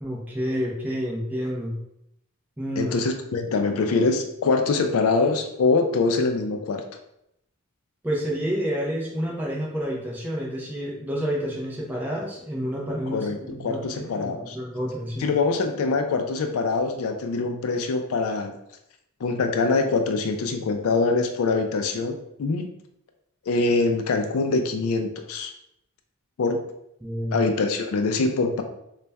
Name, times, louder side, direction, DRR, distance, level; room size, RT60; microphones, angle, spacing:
voice 1, 0.0-1.7 2.6-3.0 8.0-15.3 27.0-27.4, equal, 10° right, -5 dB, 0.6 m, -29 dB
voice 2, 2.8-6.8 13.1-14.6 15.2-18.5 19.2-22.7 23.5-25.5 26.4-26.6 27.3-28.6, left 3 dB, 75° left, 6 dB, 0.4 m, -24 dB
4.0 x 2.2 x 3.4 m, 0.80 s
head